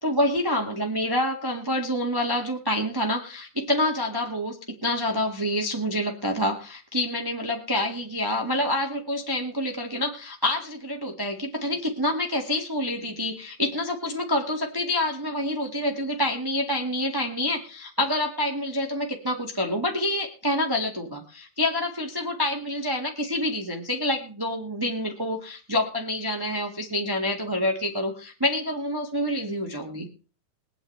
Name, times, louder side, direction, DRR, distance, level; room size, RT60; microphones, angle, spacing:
voice 1, 0.0-30.1, left 1 dB, 10° right, 2 dB, 1.3 m, -27 dB
22.5 x 8.9 x 3.3 m, 0.36 s
omnidirectional pair, 3.5 m